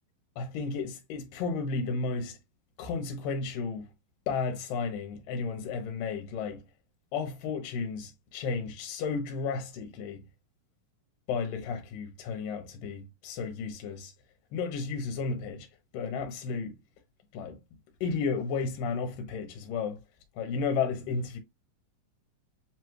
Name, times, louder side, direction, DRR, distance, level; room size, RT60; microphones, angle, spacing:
voice 1, 0.4-2.4 2.8-3.9 4.3-6.6 7.1-10.2 11.3-14.1 14.5-15.7 15.9-16.8 17.3-17.6 18.0-20.0 20.4-21.4, left 5 dB, 80° left, 2.4 m, -33 dB
7.4 x 3.0 x 2.3 m
omnidirectional pair, 4.0 m